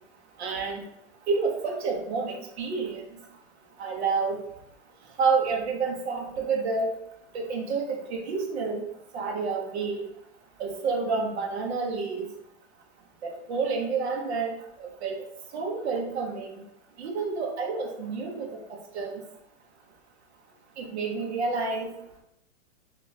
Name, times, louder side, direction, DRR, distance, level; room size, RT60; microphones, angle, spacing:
voice 1, 0.4-0.8 1.3-3.2 3.8-4.4 5.2-6.9 7.3-8.8 9.1-10.0 10.6-12.3 13.2-14.5 14.8-15.2 15.5-16.6 17.0-19.2 20.8-21.9, right 4 dB, 60° right, 1 dB, 1.0 m, -29 dB
3.6 x 3.4 x 2.8 m, 0.80 s
supercardioid pair, 165°, 36 cm